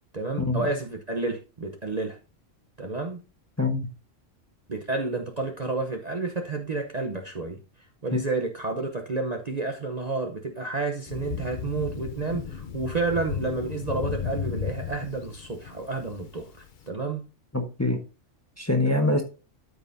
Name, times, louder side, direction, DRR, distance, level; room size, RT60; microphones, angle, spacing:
voice 1, 0.1-2.2 2.8-3.2 4.7-7.6 8.0-17.3, right 3 dB, 35° right, 0.9 m, -30 dB
voice 2, 3.6-3.9 17.5-18.0 18.6-19.2, left 2 dB, 15° left, 1.1 m, -24 dB
Thunder, 11.1-16.8, left 8 dB, 45° left, 0.9 m, -34 dB
13.0 x 5.5 x 2.7 m
omnidirectional pair, 1.3 m